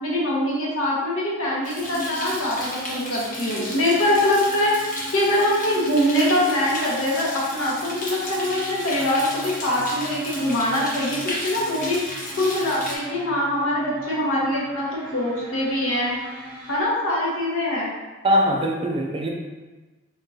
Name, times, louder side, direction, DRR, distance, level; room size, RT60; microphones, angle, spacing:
voice 1, 0.0-4.7 5.1-12.0 12.4-16.1 16.7-17.9, left 1 dB, 75° left, -5 dB, 1.1 m, -23 dB
sound 1, 1.6-12.9, left 1 dB, 35° left, 1.0 m, -34 dB
sound 2, 1.8-16.8, right 1 dB, 55° right, 0.7 m, -40 dB
voice 2, 18.2-19.3, equal, 25° right, 1 dB, 0.3 m, -21 dB
3.6 x 3.6 x 2.7 m, 1.2 s
head